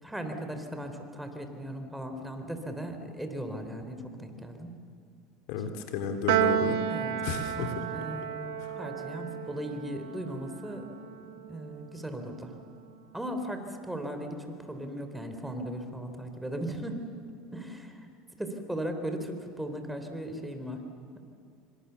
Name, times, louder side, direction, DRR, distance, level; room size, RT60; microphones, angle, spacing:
voice 1, 0.0-4.8 6.9-11.0 11.5-12.6 13.1-17.0 17.5-18.1 18.4-20.8 21.1-21.2, right 1 dB, 5° right, 6 dB, 3.9 m, -37 dB
voice 2, 5.5-6.8 7.2-7.9 8.6-8.8, left 6 dB, 70° left, 6 dB, 3.1 m, -32 dB
Piano, 6.3-12.8, right 11 dB, 75° right, 1.5 m, -33 dB
27.0 x 25.0 x 7.1 m, 2.5 s
supercardioid pair, 100°, 0 cm